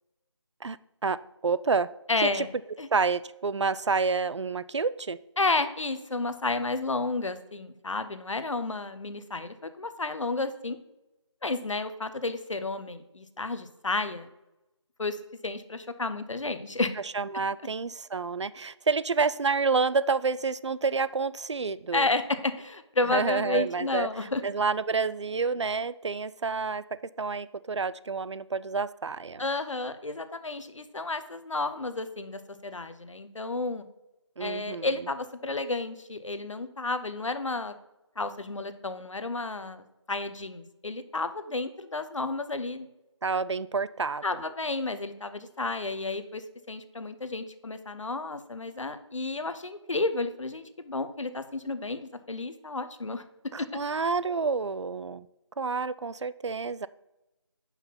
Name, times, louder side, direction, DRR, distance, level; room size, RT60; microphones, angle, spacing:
voice 1, 1.4-1.9 2.2-2.5 2.9-5.2 17.1-22.1 23.1-29.5 34.4-34.9 43.2-44.4 53.5-55.3 55.6-56.9, right 4 dB, 70° right, 17 dB, 0.4 m, -29 dB
voice 2, 2.1-2.5 2.8-2.9 5.4-10.8 11.4-14.3 15.0-15.2 15.4-16.9 21.9-24.4 29.4-33.9 34.4-37.7 38.2-42.9 44.2-53.2 53.6-53.7, left 3 dB, 85° left, 11 dB, 0.8 m, -31 dB
5.9 x 5.6 x 5.7 m, 0.96 s
figure-of-eight pair, 180°, 16 cm